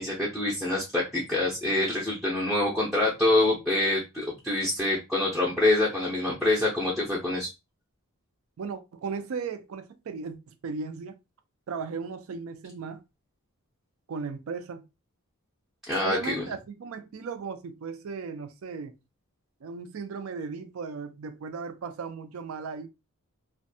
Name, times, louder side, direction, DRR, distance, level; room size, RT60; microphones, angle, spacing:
voice 1, 0.0-7.5 15.9-16.4, left 2 dB, ahead, 0.5 m, -26 dB
voice 2, 8.6-11.2 11.7-13.0 14.1-14.8 16.0-19.0 19.6-22.9, right 5 dB, 65° right, 0.4 m, -36 dB
2.5 x 2.2 x 2.6 m
head